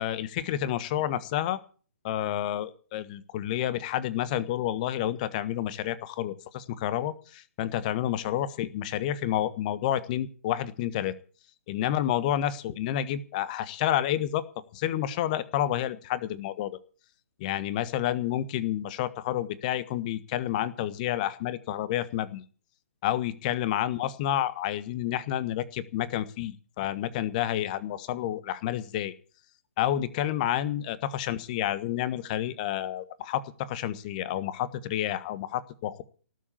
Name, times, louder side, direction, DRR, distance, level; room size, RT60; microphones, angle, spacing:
voice 1, 0.0-1.6 2.0-11.1 11.7-14.4 14.7-16.8 17.4-22.4 23.0-29.1 29.8-36.0, left 12 dB, 30° left, 15 dB, 1.4 m, -29 dB
18.5 x 7.4 x 8.5 m, 0.39 s
figure-of-eight pair, 130°, 8 cm